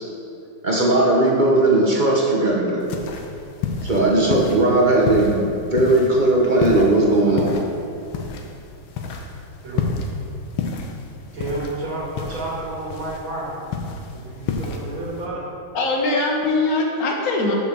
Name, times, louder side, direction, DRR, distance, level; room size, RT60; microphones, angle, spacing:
voice 1, 0.6-2.8 3.8-7.5, right 2 dB, 55° right, -3 dB, 0.5 m, -18 dB
sound 1, 2.8-15.3, left 5 dB, 85° left, 1.6 m, -30 dB
voice 2, 11.3-13.8 14.1-15.4, right 2 dB, 70° right, -5 dB, 2.4 m, -31 dB
voice 3, 15.7-17.6, left 2 dB, 50° left, 0 dB, 1.4 m, -21 dB
6.7 x 5.5 x 6.6 m, 2.6 s
omnidirectional pair, 2.3 m